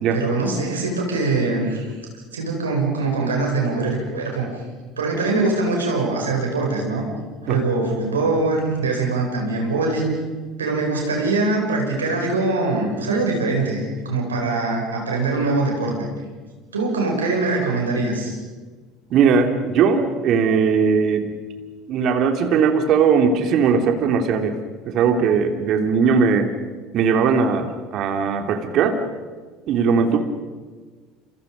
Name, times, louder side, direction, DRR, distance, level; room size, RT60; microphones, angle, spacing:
voice 1, 0.1-1.9 2.3-4.5 5.0-7.1 7.4-10.1 10.6-16.1 16.7-18.4, right 3 dB, 80° right, 0 dB, 7.1 m, -22 dB
voice 2, 19.1-21.3 21.9-24.6 24.8-26.5 26.9-29.0 29.7-30.2, right 6 dB, 50° right, 5 dB, 2.9 m, -19 dB
28.5 x 28.0 x 5.4 m, 1.4 s
figure-of-eight pair, 65°, 0 cm